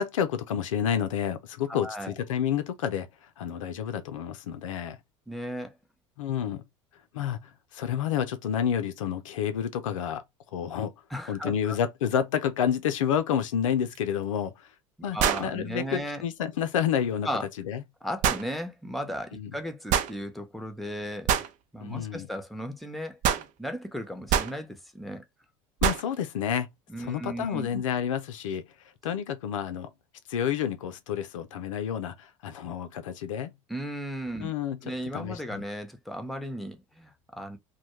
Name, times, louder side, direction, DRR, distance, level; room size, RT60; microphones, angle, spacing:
voice 1, 0.0-5.0 6.2-6.6 7.1-10.2 10.5-10.9 11.3-14.7 15.0-17.3 17.6-17.8 19.3-19.5 21.8-22.3 25.8-26.7 27.0-28.7 29.0-29.9 30.3-33.5 34.4-34.8 35.1-35.6, left 8 dB, 85° left, 0.4 m, -29 dB
voice 2, 1.7-2.1 5.3-5.8 11.1-11.8 15.1-16.2 17.2-17.5 18.0-21.5 21.7-25.2 26.9-27.8 33.7-34.5 34.8-37.6, equal, ahead, 0.6 m, -36 dB
sound 1, 13.9-14.0 15.2-15.5 18.2-18.5 19.9-20.1 21.3-21.5 23.2-23.5 24.3-24.6 25.8-26.1, right 9 dB, 50° right, 0.5 m, -24 dB
2.2 x 2.1 x 3.0 m
hypercardioid pair, 75°, 16 cm